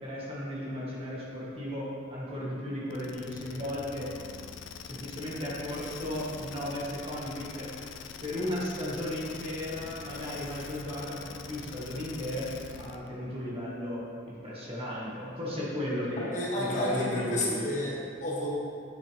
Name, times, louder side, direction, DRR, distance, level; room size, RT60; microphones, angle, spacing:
voice 1, 0.0-4.1 4.8-7.7 8.2-12.5 12.8-16.3 16.6-17.7, left 1 dB, 30° right, -6 dB, 1.8 m, -35 dB
sound 1, 2.9-13.1, left 6 dB, 75° left, 0.5 m, -44 dB
voice 2, 16.2-18.5, left 1 dB, 40° left, -6 dB, 1.7 m, -31 dB
9.2 x 6.9 x 3.5 m, 2.4 s
head